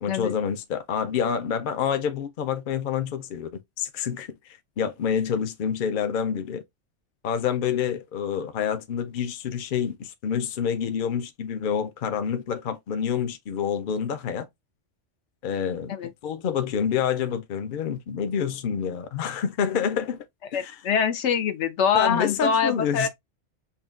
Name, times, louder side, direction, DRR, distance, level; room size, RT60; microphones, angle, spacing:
voice 1, 0.0-3.5 3.8-4.3 4.8-6.6 7.2-14.5 15.4-15.9 16.2-20.3 20.5-20.8 21.9-23.1, left 7 dB, 55° left, 0.7 m, -27 dB
voice 2, 20.5-23.1, left 7 dB, 75° left, 1.0 m, -24 dB
5.5 x 2.3 x 2.4 m
omnidirectional pair, 1.2 m